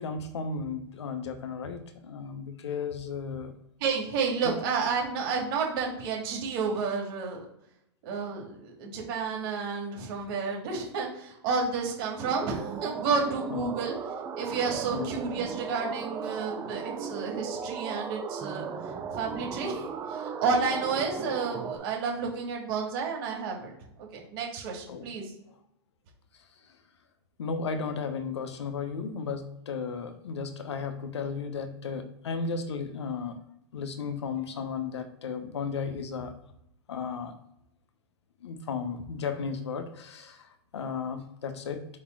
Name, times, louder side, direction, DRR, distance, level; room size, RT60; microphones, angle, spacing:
voice 1, 0.0-3.5 4.4-4.5 13.5-13.7 14.9-15.1 24.9-25.1 27.4-33.4 33.7-36.3 36.9-37.3 38.4-41.9, left 5 dB, 80° left, 9 dB, 1.0 m, -34 dB
voice 2, 3.8-7.4 8.0-14.0 14.4-18.6 19.1-23.7 24.1-25.2, right 5 dB, 55° right, -1 dB, 2.5 m, -31 dB
sound 1, 12.2-21.8, right 6 dB, 25° right, 0.8 m, -36 dB
5.3 x 4.2 x 4.6 m, 0.79 s
hypercardioid pair, 120°, 14 cm